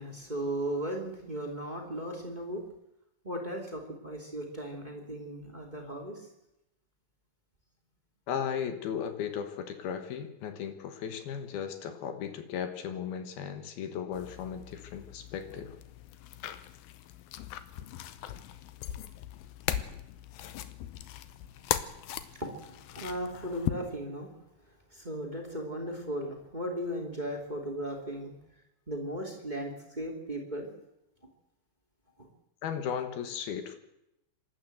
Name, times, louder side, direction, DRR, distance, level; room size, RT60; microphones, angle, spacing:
voice 1, 0.0-2.6 3.2-6.3 22.3-24.3 24.7-28.3 28.9-30.7 32.2-32.3, right 1 dB, 15° right, 3 dB, 1.9 m, -36 dB
voice 2, 8.3-15.8 32.6-33.8, left 8 dB, 65° left, 8 dB, 2.9 m, -36 dB
sound 1, 14.1-23.7, left 12 dB, 85° left, 2.1 m, -39 dB
26.0 x 12.5 x 8.0 m, 0.88 s
omnidirectional pair, 5.4 m